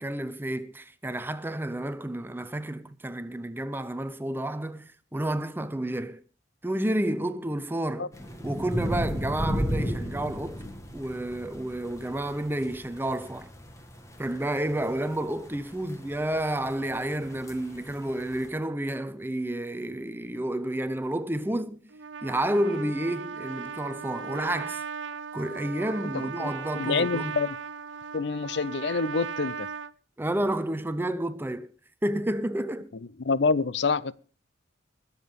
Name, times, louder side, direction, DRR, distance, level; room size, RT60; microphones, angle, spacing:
voice 1, 0.0-6.2 6.6-8.1 8.4-10.6 10.9-13.5 14.2-21.9 22.2-24.8 25.3-27.3 30.2-31.7 32.0-32.9, right 1 dB, 10° right, 0.6 m, -30 dB
sound 1, 8.1-18.5, equal, 15° left, 1.7 m, -35 dB
Trumpet, 21.9-29.9, right 6 dB, 75° right, 0.7 m, -37 dB
voice 2, 26.1-27.6 28.1-29.7 33.2-34.1, left 4 dB, 60° left, 0.6 m, -27 dB
20.5 x 7.4 x 5.3 m
head